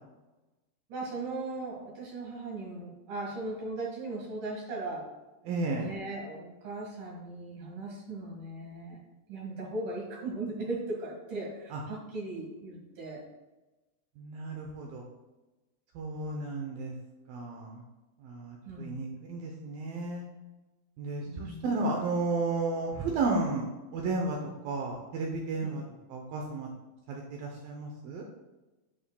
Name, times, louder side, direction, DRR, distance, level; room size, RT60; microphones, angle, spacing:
voice 1, 0.9-5.1 5.7-9.0 9.3-13.2 18.7-19.0 21.2-21.7 25.6-25.7, right 2 dB, 55° right, -2 dB, 2.7 m, -38 dB
voice 2, 5.4-5.9 11.7-11.8 14.2-15.0 16.0-16.9 17.3-17.8 18.2-20.3 21.0-23.7 23.9-25.8 26.1-26.7 27.1-28.2, right 3 dB, 80° right, 1 dB, 2.1 m, -33 dB
11.0 x 6.1 x 2.2 m, 1.1 s
omnidirectional pair, 5.1 m